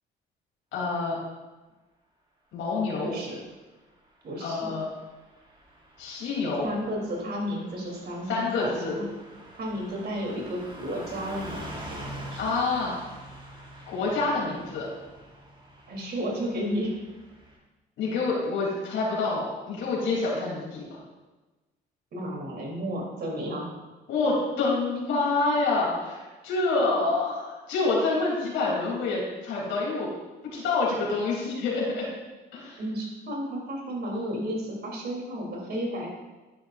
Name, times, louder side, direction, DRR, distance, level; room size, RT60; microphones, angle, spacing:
voice 1, 0.7-1.2 2.5-3.2 4.4-4.9 6.0-6.7 8.3-9.0 12.4-13.0 13.9-14.9 18.0-21.0 24.1-30.1 30.5-32.0 32.5-32.8, left 3 dB, 90° left, -5 dB, 3.2 m, -27 dB
voice 2, 3.0-3.4 4.2-4.7 6.6-9.1 9.6-12.4 15.9-16.9 22.1-23.8 30.5-30.6 32.8-36.1, equal, 55° right, -1 dB, 3.3 m, -33 dB
Car passing by / Truck, 4.6-17.6, right 1 dB, 25° right, 3.1 m, -45 dB
10.5 x 10.0 x 2.6 m, 1.2 s
cardioid pair, 90°, 20 cm